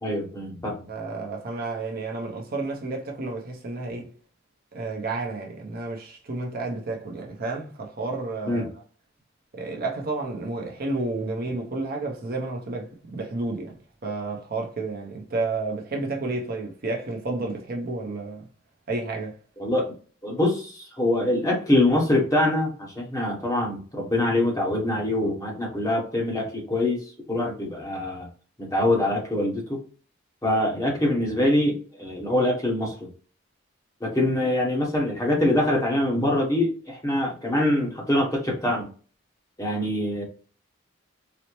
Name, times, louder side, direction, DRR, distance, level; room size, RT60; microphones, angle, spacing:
voice 1, 0.0-0.8 8.5-8.7 19.6-19.9 20.2-27.0 27.3-28.3 28.6-29.8 30.4-33.1 34.0-38.9 39.6-40.2, left 1 dB, 15° left, 1.0 m, -24 dB
voice 2, 0.9-4.1 4.7-8.7 9.5-13.8 14.0-18.5 18.9-19.4, right 3 dB, 45° right, 0.6 m, -31 dB
4.0 x 2.1 x 3.0 m
head